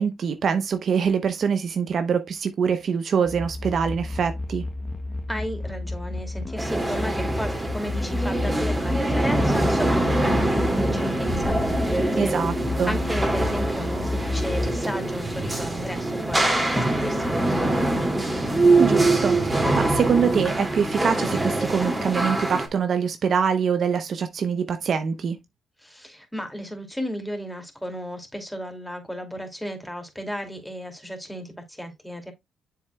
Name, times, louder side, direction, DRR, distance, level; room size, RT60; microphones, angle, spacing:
voice 1, 0.0-4.6 12.2-12.5 12.8-13.0 18.8-25.4, right 6 dB, 55° right, 0.8 m, -24 dB
sound 1, 3.3-14.8, left 2 dB, 25° left, 0.9 m, -30 dB
voice 2, 5.3-18.1 25.8-32.3, equal, 5° left, 2.4 m, -34 dB
sound 2, 6.6-22.7, right 2 dB, 15° right, 2.3 m, -24 dB
sound 3, 8.7-19.7, right 6 dB, 75° right, 1.7 m, -42 dB
7.4 x 7.2 x 2.2 m
cardioid pair, 90°, 0 cm